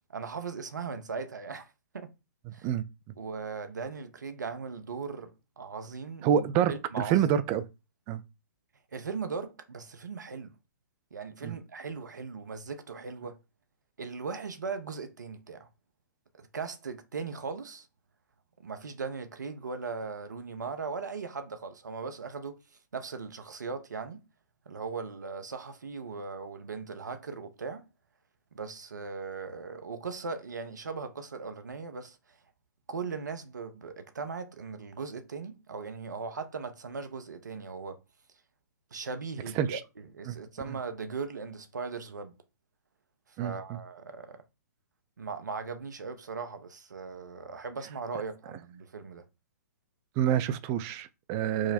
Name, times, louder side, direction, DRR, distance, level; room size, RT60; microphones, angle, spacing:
voice 1, 0.1-2.1 2.5-2.7 3.2-7.3 8.9-10.5 11.1-13.4 14.0-15.7 16.4-17.9 18.6-22.6 22.9-24.2 24.7-27.8 28.5-32.4 32.9-38.0 38.9-42.3 43.3-44.4 45.2-49.2, right 5 dB, 75° right, 0.8 m, -38 dB
voice 2, 6.2-6.7 7.1-7.6 8.1-8.2 11.4-11.5 39.6-39.8 40.3-40.4 43.4-43.5 50.2-51.7, right 9 dB, 30° right, 0.4 m, -27 dB
4.8 x 2.1 x 4.1 m
figure-of-eight pair, 120°, 10 cm